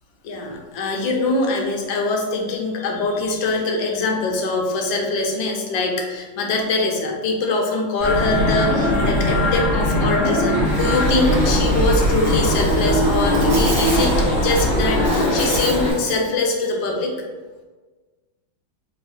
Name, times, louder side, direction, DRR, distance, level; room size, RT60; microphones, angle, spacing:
voice 1, 0.2-17.1, left 3 dB, 75° left, 1 dB, 1.4 m, -23 dB
sound 1, 8.0-15.9, left 1 dB, 40° left, 1.3 m, -20 dB
Buzz, 10.6-16.3, right 2 dB, 60° right, 0.6 m, -26 dB
3.8 x 2.3 x 4.1 m, 1.3 s
omnidirectional pair, 2.1 m